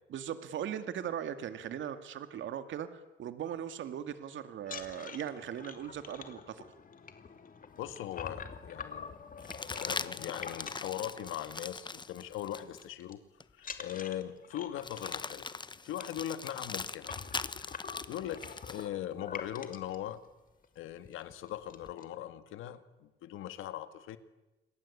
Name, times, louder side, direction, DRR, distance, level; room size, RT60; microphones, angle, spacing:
voice 1, 0.1-6.7, right 9 dB, 70° right, 10 dB, 2.1 m, -39 dB
sound 1, 4.6-11.7 12.0-12.3 12.6-13.1 13.6-20.0 20.6-20.7 21.1-21.2 21.5-22.0, left 6 dB, 45° left, 2.7 m, -46 dB
voice 2, 7.8-9.2 9.7-13.2 13.5-15.5 15.8-17.1 18.1-20.2 20.7-24.2, left 11 dB, 90° left, 11 dB, 1.8 m, -40 dB
sound 2, 7.8-7.9 9.4-12.9 13.4-13.5 14.8-18.9 21.0-21.9, left 4 dB, 25° left, 1.0 m, -41 dB
28.5 x 22.0 x 8.4 m, 1.0 s
cardioid pair, 90°, 20 cm